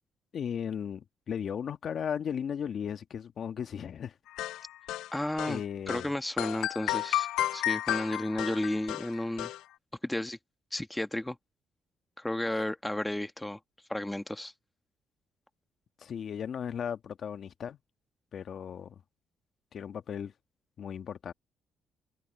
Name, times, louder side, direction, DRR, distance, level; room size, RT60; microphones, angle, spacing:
voice 1, 0.3-4.2 5.4-6.1 16.0-17.8 18.3-19.0 19.7-20.3 20.8-21.3, left 8 dB, 60° left, 1.6 m, -36 dB
sound 1, 4.4-5.6 5.9-6.1 6.4-9.6, left 14 dB, 90° left, 0.3 m, -32 dB
voice 2, 5.1-5.6 5.9-9.5 10.0-10.4 10.7-11.4 12.2-13.6 13.9-14.5, left 1 dB, 10° left, 1.4 m, -33 dB
cardioid pair, 90°, 0 cm